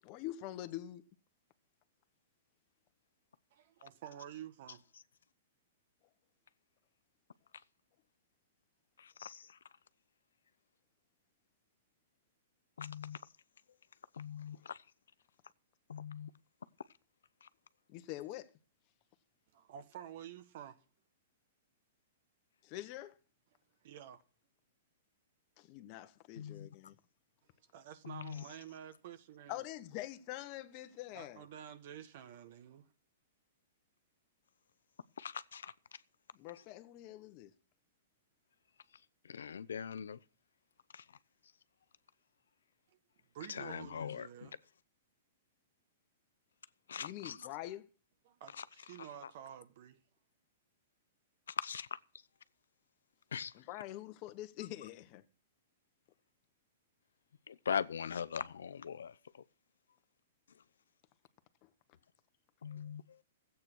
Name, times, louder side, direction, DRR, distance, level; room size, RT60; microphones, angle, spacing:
voice 1, 0.0-1.0 17.9-18.5 22.6-23.2 25.6-26.9 29.5-31.4 36.3-37.5 47.0-47.9 53.5-55.2 61.6-61.7, left 14 dB, 40° left, 1.1 m, -45 dB
voice 2, 3.5-4.8 19.5-20.8 23.8-24.2 27.7-29.6 31.1-32.9 43.3-44.6 48.2-50.0, right 10 dB, 55° right, 1.5 m, -50 dB
voice 3, 9.0-9.6 12.8-13.2 14.1-14.8 15.9-16.3 17.4-17.5 26.4-26.7 28.0-28.4 35.2-35.7 39.2-40.2 40.9-41.0 43.5-44.5 46.9-47.5 48.6-48.7 51.5-51.9 53.3-53.5 57.5-59.1 62.6-63.2, left 7 dB, 85° left, 0.7 m, -41 dB
14.0 x 8.7 x 6.2 m
hypercardioid pair, 135°, 0 cm